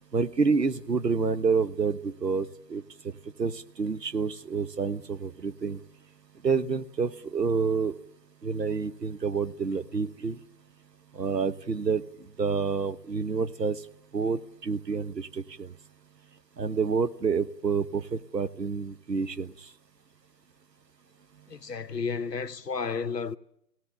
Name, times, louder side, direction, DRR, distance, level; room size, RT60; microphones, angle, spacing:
voice 1, 0.1-2.8 3.4-5.8 6.4-8.0 8.4-10.4 11.1-12.0 12.4-13.8 14.1-15.7 16.6-19.5, right 5 dB, 85° right, 1.3 m, -28 dB
voice 2, 21.5-23.4, left 5 dB, 80° left, 1.3 m, -32 dB
24.5 x 17.5 x 9.0 m
figure-of-eight pair, 160°, 48 cm